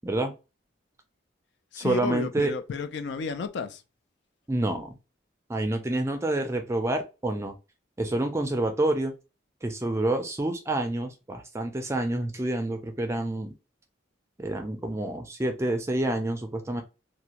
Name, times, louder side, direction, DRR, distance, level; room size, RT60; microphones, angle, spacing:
voice 1, 0.0-0.3 1.8-2.5 4.5-5.0 5.5-7.5 8.0-9.1 9.6-13.5 14.4-16.8, right 1 dB, 15° right, 0.4 m, -28 dB
voice 2, 1.7-3.8, left 5 dB, 60° left, 0.3 m, -32 dB
2.5 x 2.1 x 2.8 m
head